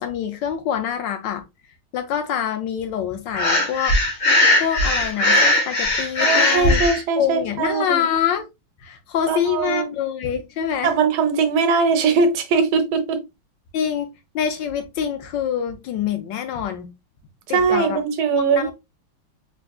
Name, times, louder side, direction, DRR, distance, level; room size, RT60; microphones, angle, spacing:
voice 1, 0.0-1.4 1.9-4.2 4.5-6.8 7.2-8.5 8.8-10.9 13.7-14.1 14.3-16.9 17.5-18.0 18.5-18.7, left 9 dB, 70° left, 1.2 m, -25 dB
Breathing, 3.3-7.0, left 1 dB, 45° left, 1.0 m, -18 dB
voice 2, 6.2-8.1 9.3-9.9 10.8-13.2 17.5-18.7, right 5 dB, 85° right, 1.6 m, -20 dB
3.6 x 3.4 x 2.2 m
omnidirectional pair, 2.2 m